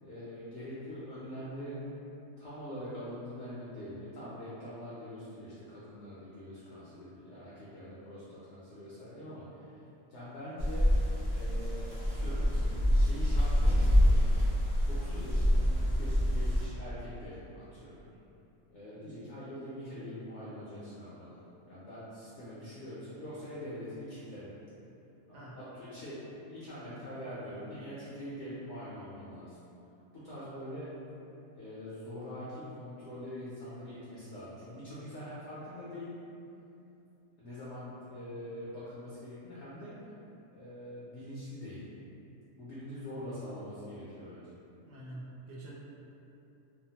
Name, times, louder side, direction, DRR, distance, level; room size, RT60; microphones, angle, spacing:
voice 1, 0.0-2.0 2.4-9.8 10.1-10.9 11.3-12.6 12.9-14.2 14.9-18.0 18.7-21.4 21.7-24.5 25.3-26.2 26.5-29.6 30.1-31.0 31.5-36.2 37.4-40.0 40.5-41.9 42.6-44.6, equal, 65° left, -9 dB, 0.7 m, -44 dB
sound 1, 10.6-16.7, equal, 50° right, 0.4 m, -26 dB
voice 2, 44.9-45.8, right 1 dB, 70° right, -6 dB, 0.9 m, -46 dB
2.7 x 2.0 x 2.8 m, 2.9 s
omnidirectional pair, 1.6 m